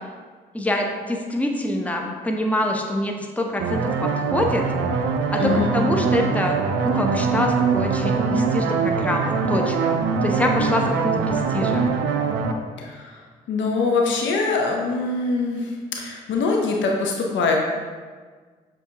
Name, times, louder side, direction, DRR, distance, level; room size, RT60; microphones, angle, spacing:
voice 1, 0.5-4.7 5.3-11.9, left 1 dB, 5° left, 1 dB, 0.7 m, -25 dB
sound 1, 3.6-12.5, right 5 dB, 70° right, 0.4 m, -23 dB
voice 2, 5.4-5.7 12.8-13.0 13.5-15.6 16.0-17.6, left 4 dB, 65° left, 0 dB, 0.6 m, -23 dB
6.8 x 2.4 x 2.8 m, 1.5 s
hypercardioid pair, 40°, 21 cm